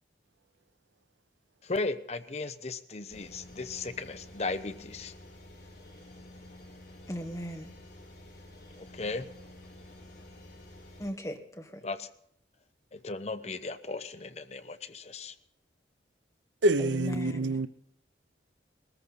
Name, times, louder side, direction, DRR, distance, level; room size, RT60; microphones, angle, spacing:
voice 1, 1.6-5.1 8.8-9.3 11.8-12.1 12.9-15.3, left 3 dB, 35° left, 0.8 m, -36 dB
sound 1, 3.1-11.1, left 1 dB, 65° left, 4.7 m, -50 dB
voice 2, 7.1-7.7 11.0-11.8 16.8-17.6, equal, 20° left, 1.4 m, -37 dB
voice 3, 16.6-17.7, right 1 dB, 85° right, 0.7 m, -26 dB
20.0 x 14.0 x 4.1 m
head